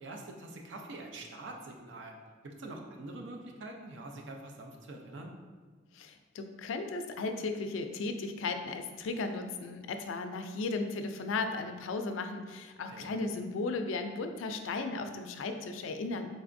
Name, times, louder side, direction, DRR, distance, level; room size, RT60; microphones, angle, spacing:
voice 1, 0.0-2.2 2.4-5.3 12.8-13.1, right 2 dB, 65° right, 2 dB, 0.5 m, -45 dB
voice 2, 5.9-16.3, left 3 dB, 90° left, 7 dB, 0.3 m, -35 dB
3.8 x 3.3 x 2.5 m, 1.4 s
head